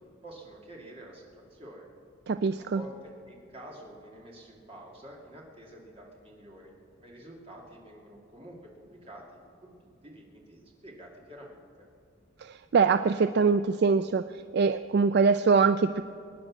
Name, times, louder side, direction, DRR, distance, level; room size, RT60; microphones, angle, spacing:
voice 1, 0.2-1.9 2.6-9.2 9.6-9.7 10.0-11.6, right 1 dB, 30° right, -2 dB, 2.5 m, -48 dB
voice 2, 2.3-2.8 12.4-14.2 14.5-16.0, right 5 dB, 55° right, 11 dB, 0.3 m, -23 dB
23.5 x 9.8 x 6.2 m, 2.5 s
head